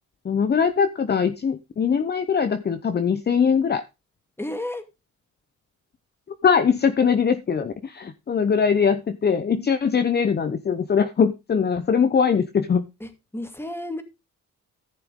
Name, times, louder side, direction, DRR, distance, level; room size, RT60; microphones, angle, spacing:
voice 1, 0.3-3.8 6.4-12.8, left 6 dB, 35° left, 10 dB, 0.9 m, -21 dB
voice 2, 4.4-4.9 13.0-14.0, left 1 dB, 10° left, 8 dB, 2.3 m, -32 dB
14.5 x 6.7 x 3.7 m, 0.26 s
cardioid pair, 90°, 30 cm